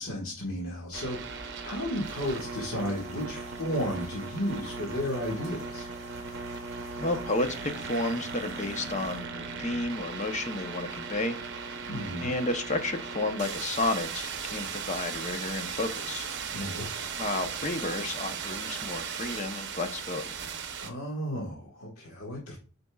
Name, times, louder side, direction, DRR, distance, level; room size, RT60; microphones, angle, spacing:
voice 1, 0.0-5.9 11.9-12.3 16.5-17.2 20.8-22.6, equal, 75° left, -3 dB, 1.7 m, -34 dB
sound 1, 0.9-20.9, right 5 dB, 55° right, 0.8 m, -37 dB
sound 2, 2.0-9.3, right 2 dB, 30° right, 3.0 m, -48 dB
voice 2, 7.0-11.3 12.2-16.3 17.2-20.3, left 2 dB, 35° left, 7 dB, 0.7 m, -32 dB
8.4 x 5.1 x 2.3 m, 0.37 s
head